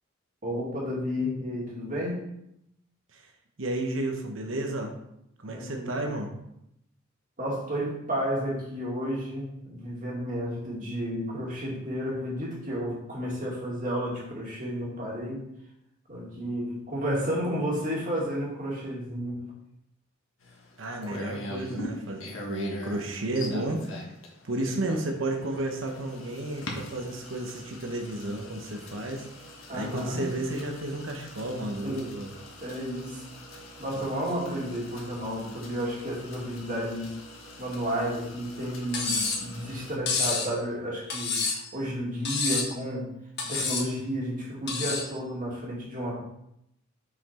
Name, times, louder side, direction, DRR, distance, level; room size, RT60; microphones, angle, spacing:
voice 1, 0.4-2.3 5.4-6.1 7.4-15.5 16.1-19.5 29.7-30.3 31.8-32.0 32.6-33.2 33.8-37.1 37.6-43.1 43.4-46.2, equal, 40° right, -3 dB, 2.2 m, -32 dB
voice 2, 3.6-4.9 5.4-6.3 20.8-23.9 24.4-29.3 29.7-32.3, right 1 dB, 70° right, 2 dB, 1.0 m, -32 dB
sound 1, 20.4-40.0, left 1 dB, 80° left, 1.5 m, -43 dB
Cutlery silverware, 38.9-39.5 40.1-40.5 41.1-41.7 42.3-42.8 43.4-43.9 44.7-45.1, left 4 dB, 55° left, 1.5 m, -28 dB
6.2 x 5.8 x 4.3 m, 0.79 s
head